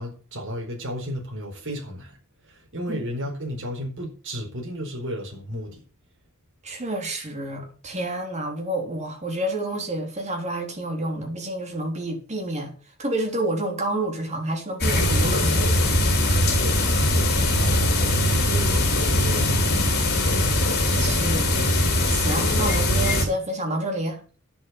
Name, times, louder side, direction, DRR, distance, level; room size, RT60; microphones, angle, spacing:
voice 1, 0.0-2.1 2.5-5.8 16.6-16.9 17.6-19.7, equal, 60° right, 4.4 m, -33 dB
voice 2, 6.6-12.7 13.0-15.7 20.9-21.7 22.1-24.2, right 1 dB, 35° right, 3.6 m, -29 dB
sound 1, 14.8-23.3, left 1 dB, 50° left, 3.5 m, -21 dB
10.5 x 7.5 x 7.1 m
head